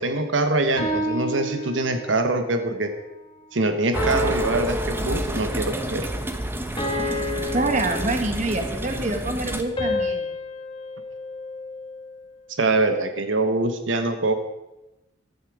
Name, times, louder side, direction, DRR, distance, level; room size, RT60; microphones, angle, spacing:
voice 1, 0.0-2.9 3.5-6.1 12.6-14.4, right 2 dB, 85° right, 7 dB, 1.2 m, -24 dB
sound 1, 0.8-2.3 4.0-5.6 6.8-8.7 9.8-12.1, left 1 dB, 25° left, 3.5 m, -30 dB
sound 2, 3.9-9.6, right 1 dB, 10° right, 1.1 m, -29 dB
voice 2, 7.5-10.3, right 2 dB, 40° right, 5 dB, 1.7 m, -26 dB
15.0 x 12.5 x 4.9 m, 0.99 s
head